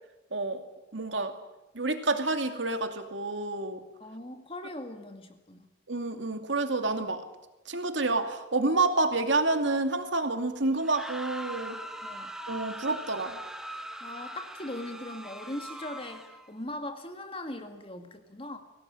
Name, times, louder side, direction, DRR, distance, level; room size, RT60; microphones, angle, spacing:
voice 1, 0.3-0.6 0.9-1.3 1.7-3.8 5.9-7.2 7.7-11.8 12.5-13.4, right 3 dB, 75° right, 7 dB, 2.4 m, -28 dB
voice 2, 4.0-5.6 12.0-12.3 14.0-18.6, left 1 dB, 30° left, 6 dB, 2.0 m, -40 dB
sound 1, 10.7-16.5, right 1 dB, 5° right, 1.3 m, -41 dB
23.0 x 17.5 x 10.0 m, 1.0 s
head